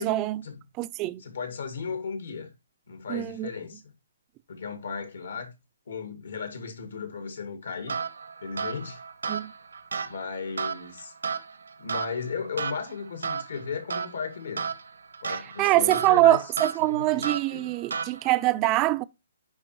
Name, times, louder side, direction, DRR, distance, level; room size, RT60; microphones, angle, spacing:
voice 1, 0.0-0.4 0.8-1.2 3.1-3.5 9.3-9.5 15.6-19.0, right 16 dB, 25° right, 0.3 m, -23 dB
voice 2, 1.2-2.5 2.9-3.8 4.5-5.5 5.9-8.0 8.4-9.0 10.1-11.1 11.8-14.8 15.2-16.5 16.8-17.7, left 5 dB, 75° left, 2.0 m, -35 dB
sound 1, 7.9-18.5, right 5 dB, 85° right, 1.0 m, -34 dB
10.0 x 4.2 x 3.0 m
hypercardioid pair, 150°, 0 cm